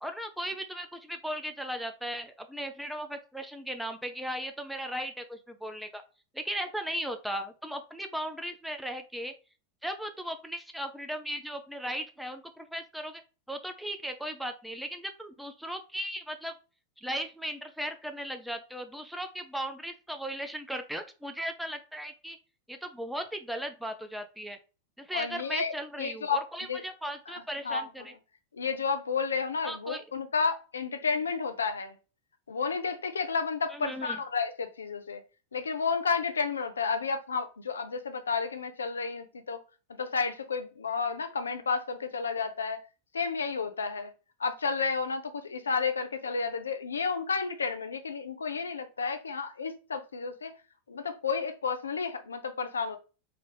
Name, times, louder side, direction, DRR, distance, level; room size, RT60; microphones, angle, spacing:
voice 1, 0.0-6.0 6.3-9.3 9.8-13.2 13.5-16.5 17.0-22.4 22.7-24.6 25.0-28.1 29.6-30.0 33.7-34.2, equal, ahead, 0.5 m, -37 dB
voice 2, 25.1-25.7 26.0-26.8 27.6-27.8 28.5-32.0 32.5-35.2 35.5-39.6 40.0-42.8 43.1-44.1 44.4-50.5 50.9-53.0, left 5 dB, 70° left, 0.5 m, -31 dB
3.8 x 2.5 x 3.3 m
figure-of-eight pair, 90°, 0 cm